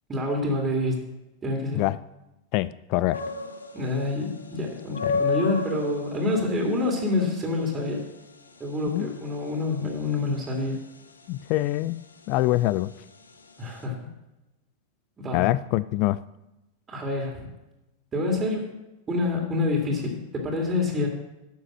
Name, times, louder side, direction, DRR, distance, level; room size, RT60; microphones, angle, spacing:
voice 1, 0.1-1.1 1.4-1.8 3.7-8.1 8.6-10.8 13.6-14.1 15.2-15.5 16.9-17.5 18.1-18.7 19.1-21.1, left 2 dB, 20° right, 1 dB, 2.5 m, -27 dB
voice 2, 2.5-3.2 5.1-5.2 8.9-9.1 11.3-12.0 12.3-12.9 15.3-16.2, left 17 dB, 45° left, 18 dB, 0.4 m, -24 dB
sound 1, 3.1-13.8, left 5 dB, 75° left, 0.9 m, -34 dB
11.5 x 7.4 x 6.2 m, 0.96 s
figure-of-eight pair, 90°, 0 cm